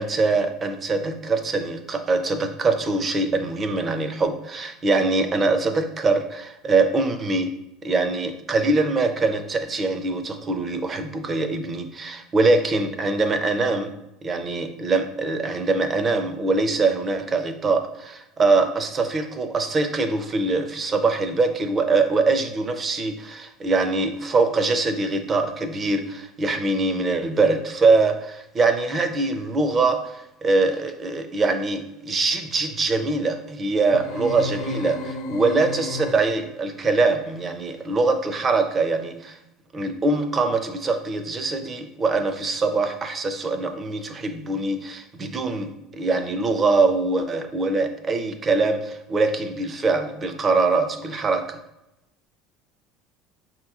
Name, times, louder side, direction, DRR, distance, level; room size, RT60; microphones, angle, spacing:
voice 1, 0.0-7.5 7.8-13.9 14.2-39.4 39.7-51.6, right 3 dB, 20° right, 7 dB, 0.4 m, -23 dB
sound 1, 33.9-36.6, left 2 dB, 55° left, 0.4 m, -33 dB
5.7 x 2.9 x 2.3 m, 0.90 s
cardioid pair, 150°, 0 cm